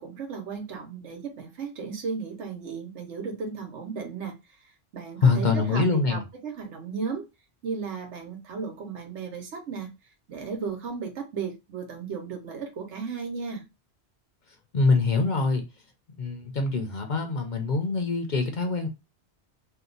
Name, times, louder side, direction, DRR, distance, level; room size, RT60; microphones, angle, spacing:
voice 1, 0.0-4.4 4.9-7.2 7.6-9.9 10.3-13.6, right 5 dB, 90° right, 1.1 m, -35 dB
voice 2, 5.2-6.2 14.7-15.6 16.2-18.9, left 4 dB, 50° left, 0.6 m, -24 dB
2.8 x 2.2 x 3.8 m
omnidirectional pair, 1.2 m